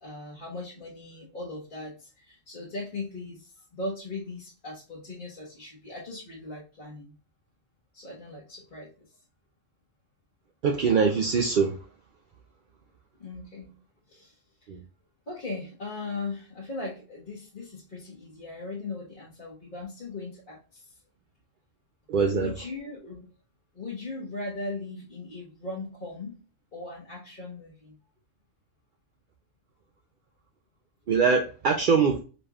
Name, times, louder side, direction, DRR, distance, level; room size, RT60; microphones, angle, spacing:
voice 1, 0.0-7.1 7.9-8.9 13.2-13.7 14.1-14.3 15.3-20.9 22.3-23.3 23.7-26.4 26.7-28.0, left 2 dB, 45° left, 1.3 m, -38 dB
voice 2, 10.6-11.7 14.7-14.8 22.1-22.5 31.1-32.2, right 5 dB, 55° right, 0.6 m, -23 dB
5.1 x 3.3 x 2.3 m
omnidirectional pair, 1.3 m